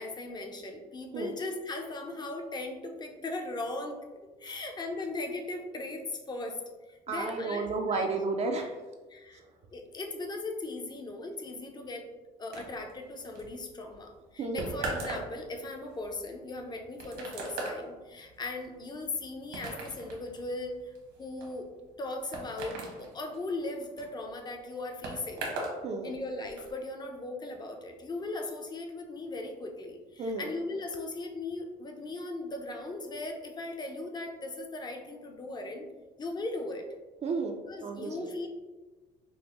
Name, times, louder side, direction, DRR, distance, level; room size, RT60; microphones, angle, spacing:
voice 1, 0.0-4.0 4.4-6.6 6.9-8.1 9.1-9.4 9.7-12.1 12.4-20.9 21.2-21.7 22.0-25.5 26.0-35.9 36.2-36.9 37.7-38.5, left 2 dB, 25° left, 3 dB, 0.6 m, -38 dB
voice 2, 7.1-8.7 14.4-14.7 25.8-26.1 30.2-30.5 37.2-38.3, right 3 dB, 40° right, 3 dB, 0.4 m, -32 dB
sound 1, 12.5-25.8 26.1-26.7, right 2 dB, 80° right, 1.2 m, -40 dB
5.2 x 2.0 x 3.0 m, 1.2 s
cardioid pair, 110°, 17 cm